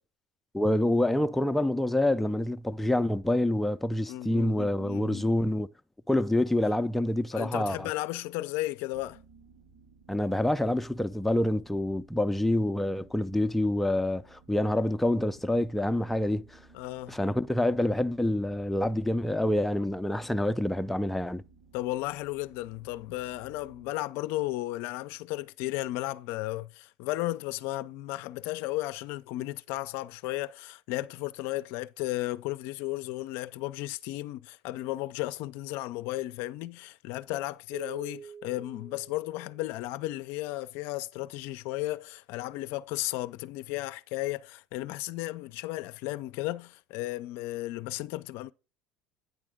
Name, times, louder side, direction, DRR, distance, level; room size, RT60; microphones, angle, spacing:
voice 1, 0.5-5.7 6.1-7.9 10.1-16.6 17.1-21.4, left 1 dB, 5° left, 0.4 m, -27 dB
voice 2, 4.1-5.3 7.3-9.2 16.7-17.2 21.7-48.5, left 17 dB, 65° left, 0.4 m, -34 dB
sound 1, 8.9-23.9, right 3 dB, 65° right, 4.0 m, -58 dB
sound 2, 37.7-40.3, right 6 dB, 25° right, 0.8 m, -47 dB
9.1 x 3.5 x 4.9 m
hypercardioid pair, 80°, 4 cm